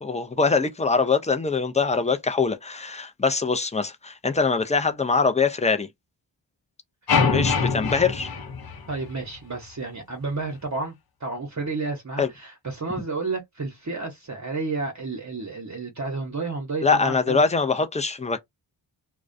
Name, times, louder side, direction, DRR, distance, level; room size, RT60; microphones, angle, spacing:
voice 1, 0.0-5.9 7.3-8.3 12.2-12.3 16.8-18.4, left 4 dB, 15° left, 0.5 m, -23 dB
sound 1, 7.1-9.4, left 5 dB, 50° left, 0.7 m, -24 dB
voice 2, 8.9-17.4, right 3 dB, 35° right, 0.8 m, -31 dB
2.3 x 2.1 x 2.5 m
cardioid pair, 45°, 47 cm